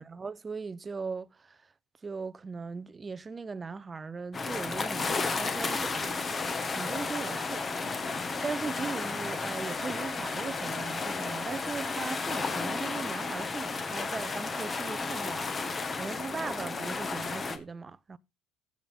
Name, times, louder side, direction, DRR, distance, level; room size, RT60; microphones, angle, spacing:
voice 1, 0.0-1.7 2.0-6.4 6.7-7.6 8.4-18.2, right 4 dB, 25° right, 0.7 m, -39 dB
sound 1, 4.3-17.6, left 4 dB, 30° left, 1.7 m, -33 dB
Wind instrument woodwind instrument, 6.6-14.8, equal, 5° left, 3.8 m, -52 dB
15.5 x 7.4 x 3.8 m
supercardioid pair, 90°, 0 cm